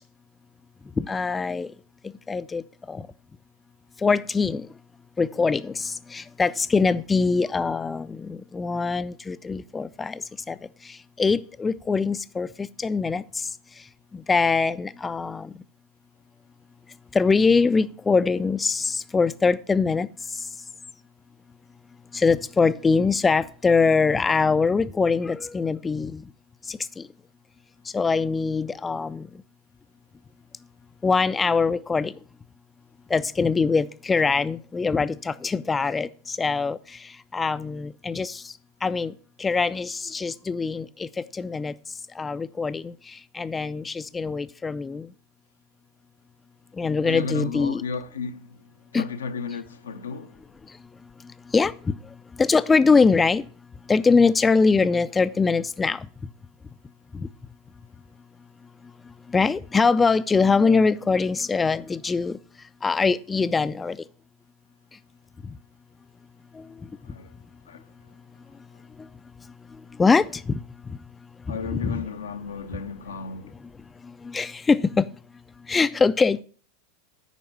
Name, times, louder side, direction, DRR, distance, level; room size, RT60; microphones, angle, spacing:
voice 1, 1.0-1.7 2.3-2.6 2.9-3.0 4.0-4.7 5.2-10.2 10.5-10.6 11.2-13.2 14.3-15.5 17.1-20.1 22.1-26.2 26.7-27.0 27.9-29.3 31.0-32.1 33.1-36.8 37.3-38.4 38.8-39.1 39.4-41.1 41.3-41.7 42.2-42.9 43.3-45.1 46.8-47.8 48.9-49.1 51.5-51.9 52.4-53.4 53.9-56.1 57.1-57.3 59.3-62.4 62.8-64.0 70.0-70.6 71.7-72.0 74.2-75.1 75.7-76.4, left 4 dB, 15° left, 0.4 m, -23 dB
voice 2, 47.0-48.6 48.9-50.3 67.1-67.3 67.7-67.8 71.5-73.5, left 4 dB, 85° left, 0.7 m, -33 dB
9.2 x 5.3 x 7.3 m
hypercardioid pair, 95°, 0 cm